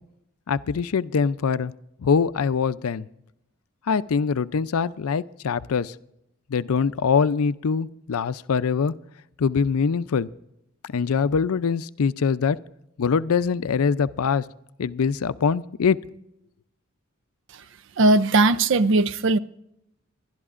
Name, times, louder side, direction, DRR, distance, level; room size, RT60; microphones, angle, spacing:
voice 1, 0.5-1.7 2.0-3.1 3.9-5.9 6.5-8.9 9.4-10.3 10.8-12.6 13.0-14.4 14.8-16.0, left 6 dB, 75° left, 0.4 m, -23 dB
voice 2, 18.0-19.4, right 2 dB, 55° right, 0.5 m, -18 dB
25.0 x 12.0 x 2.5 m
head